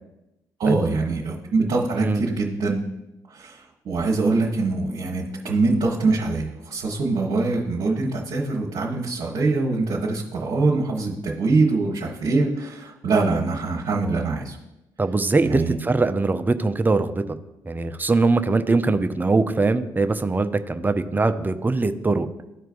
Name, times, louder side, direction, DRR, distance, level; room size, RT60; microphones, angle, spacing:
voice 1, 0.6-2.8 3.3-14.6 15.5-15.8, right 3 dB, 55° right, -3 dB, 1.1 m, -23 dB
voice 2, 15.0-17.2 17.7-22.3, right 3 dB, 20° right, 9 dB, 0.6 m, -22 dB
13.0 x 4.5 x 2.5 m, 0.93 s
hypercardioid pair, 45°, 10 cm